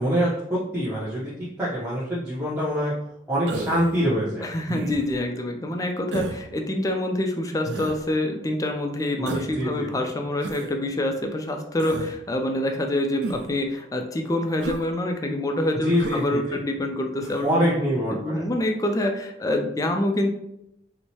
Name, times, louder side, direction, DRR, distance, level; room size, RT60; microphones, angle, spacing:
voice 1, 0.0-1.3 1.6-2.9 3.3-4.5 9.2-10.1 15.8-16.6 17.4-18.4, equal, 10° right, -10 dB, 0.7 m, -25 dB
Human voice, 3.5-4.0 4.7-5.2 6.1-6.4 7.7-8.0 9.3-9.6 10.4-10.7 11.8-12.1 13.2-13.6 14.6-14.9 16.0-16.3 17.2-17.5, right 2 dB, 70° right, 0.4 m, -32 dB
voice 2, 4.4-20.3, left 1 dB, 20° left, 4 dB, 0.3 m, -26 dB
4.5 x 2.1 x 2.8 m, 0.79 s
head